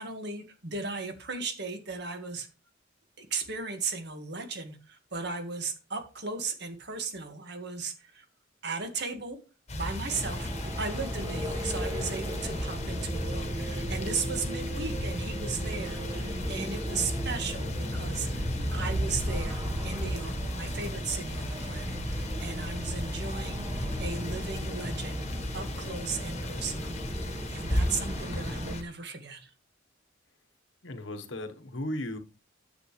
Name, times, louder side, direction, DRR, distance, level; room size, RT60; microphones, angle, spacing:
voice 1, 0.0-2.5 3.2-8.2 8.6-9.4 9.7-10.5 10.8-25.2 25.5-27.0 27.5-29.5, right 4 dB, 55° right, 1.8 m, -36 dB
sound 1, 9.7-28.8, equal, 35° left, 1.4 m, -35 dB
sound 2, 10.1-28.8, equal, 20° right, 1.5 m, -38 dB
sound 3, 11.5-16.3, right 3 dB, 85° right, 1.9 m, -41 dB
voice 2, 30.8-32.2, left 1 dB, 70° left, 1.3 m, -36 dB
9.6 x 7.8 x 3.3 m
head